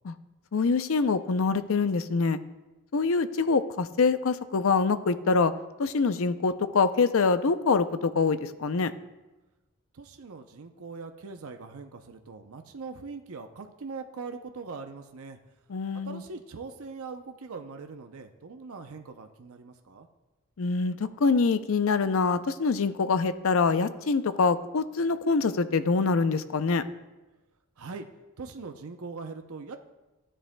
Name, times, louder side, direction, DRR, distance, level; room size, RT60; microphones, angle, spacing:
voice 1, 0.5-2.4 2.9-5.5 5.8-8.9 15.7-16.2 20.6-26.8, left 4 dB, 65° left, 12 dB, 0.5 m, -25 dB
voice 2, 9.9-15.4 16.0-20.1 27.8-28.1 28.4-29.8, right 4 dB, 75° right, 5 dB, 0.6 m, -41 dB
14.5 x 10.0 x 2.2 m, 1.1 s
head